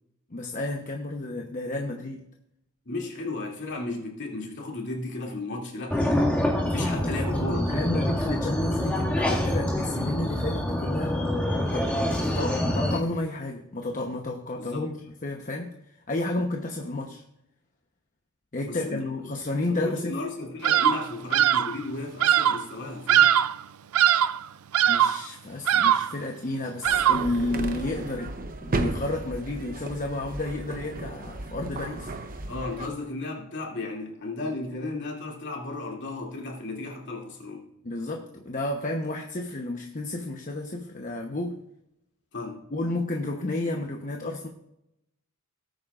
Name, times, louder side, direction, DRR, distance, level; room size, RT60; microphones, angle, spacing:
voice 1, 0.3-2.3 6.7-11.2 11.7-11.9 12.2-15.0 15.2-15.7 16.1-17.2 18.5-20.2 24.9-28.4 28.6-32.1 37.8-41.6 42.7-44.5, left 2 dB, 35° left, 2 dB, 1.0 m, -31 dB
voice 2, 2.9-7.7 14.6-14.9 18.6-19.1 19.7-23.3 32.5-37.7 42.3-42.7, left 3 dB, 55° left, -1 dB, 2.7 m, -34 dB
sound 1, 5.9-13.0, left 1 dB, 5° left, 2.0 m, -26 dB
Bird vocalization bird call bird song, 20.6-21.1 21.3-21.8 22.2-22.6 23.1-23.6 23.9-24.4 24.7-25.2 25.7-26.2 26.8-27.4, right 10 dB, 75° right, 0.4 m, -21 dB
sound 2, 26.8-32.9, right 2 dB, 40° right, 0.8 m, -34 dB
18.5 x 8.9 x 2.5 m, 0.80 s
head